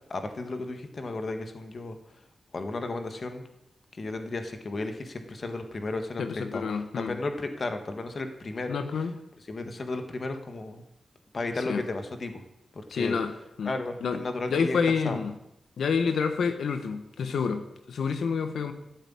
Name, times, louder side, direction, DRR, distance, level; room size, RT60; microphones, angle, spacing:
voice 1, 0.1-2.2 2.5-3.4 3.9-8.8 9.5-10.8 11.3-12.4 12.7-13.2 13.6-14.8 15.0-15.2, left 2 dB, 40° left, 7 dB, 1.6 m, -34 dB
voice 2, 6.2-7.1 8.7-9.1 11.7-11.8 12.9-13.3 13.6-13.7 14.0-14.2 14.5-15.3 15.8-18.7, left 5 dB, 90° left, 8 dB, 1.3 m, -28 dB
14.0 x 8.2 x 8.7 m, 0.84 s
wide cardioid pair, 155°, 0 cm